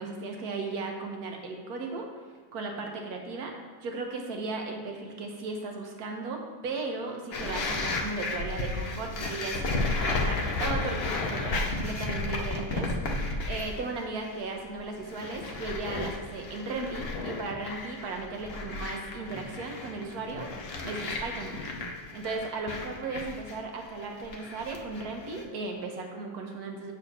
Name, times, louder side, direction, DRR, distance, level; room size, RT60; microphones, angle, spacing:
voice 1, 0.0-2.1 2.5-3.5 3.8-20.5 20.8-21.5 22.1-26.9, right 3 dB, 60° right, 2 dB, 1.3 m, -36 dB
sound 1, 7.3-13.9 14.2-14.6 15.0-25.4, left 2 dB, 75° left, 0.5 m, -33 dB
8.3 x 6.5 x 2.7 m, 1.4 s
omnidirectional pair, 2.1 m